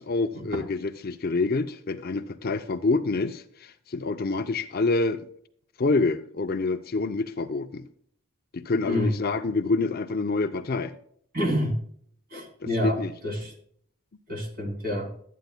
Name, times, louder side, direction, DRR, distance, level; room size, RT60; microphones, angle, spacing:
voice 1, 0.0-5.3 5.8-7.9 8.5-10.9 12.6-13.1, left 3 dB, 45° left, 0.5 m, -27 dB
voice 2, 11.3-11.8 12.3-13.0 13.2-13.5 14.3-15.1, equal, 40° right, 3.0 m, -27 dB
13.5 x 9.3 x 2.2 m
head